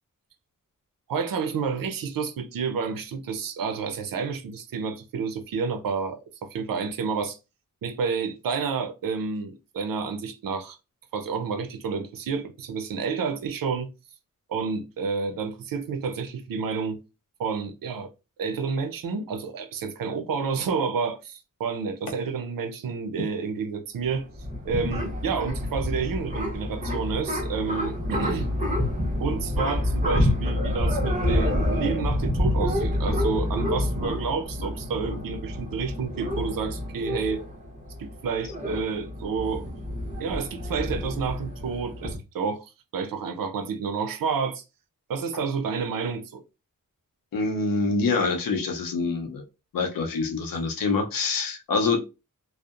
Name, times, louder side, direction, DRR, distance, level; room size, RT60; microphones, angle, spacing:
voice 1, 1.1-7.4 7.8-10.8 11.1-13.9 14.5-17.0 17.4-18.1 18.4-24.2 24.6-28.5 29.2-37.4 38.0-39.7 40.2-44.6 45.1-46.4, right 5 dB, 85° right, 0.5 m, -30 dB
sound 1, 24.0-42.2, left 1 dB, 25° right, 0.8 m, -28 dB
voice 2, 47.3-49.4 49.7-52.0, left 4 dB, 80° left, 0.7 m, -25 dB
2.7 x 2.0 x 2.4 m
wide cardioid pair, 100°, 33 cm